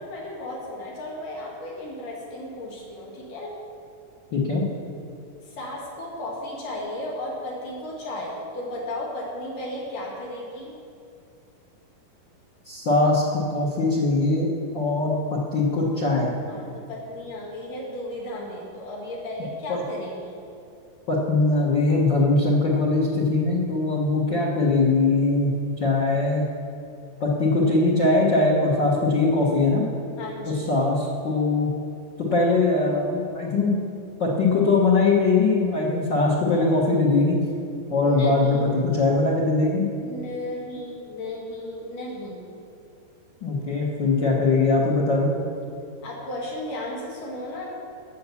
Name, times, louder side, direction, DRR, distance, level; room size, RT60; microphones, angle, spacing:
voice 1, 0.0-3.5 5.4-10.8 16.4-20.4 30.2-30.8 37.9-38.7 40.0-42.5 46.0-47.7, left 1 dB, 60° left, -3 dB, 3.2 m, -34 dB
voice 2, 4.3-4.6 12.6-14.5 14.7-16.3 19.7-19.8 21.1-26.5 27.2-29.8 30.7-31.7 32.2-33.7 34.2-37.4 37.9-39.9 43.4-45.3, left 3 dB, 85° left, -4 dB, 1.0 m, -21 dB
12.5 x 8.3 x 7.1 m, 2.6 s
omnidirectional pair, 4.5 m